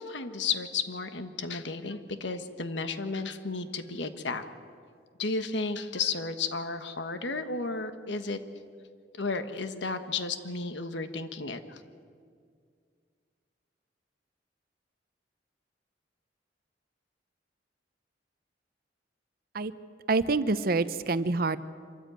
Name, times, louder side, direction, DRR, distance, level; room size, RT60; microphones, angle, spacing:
voice 1, 0.0-4.4 5.2-8.4 9.2-11.8, left 4 dB, 80° left, 9 dB, 1.4 m, -33 dB
voice 2, 20.1-21.6, right 3 dB, 55° right, 14 dB, 0.8 m, -26 dB
25.5 x 14.5 x 9.1 m, 2.1 s
head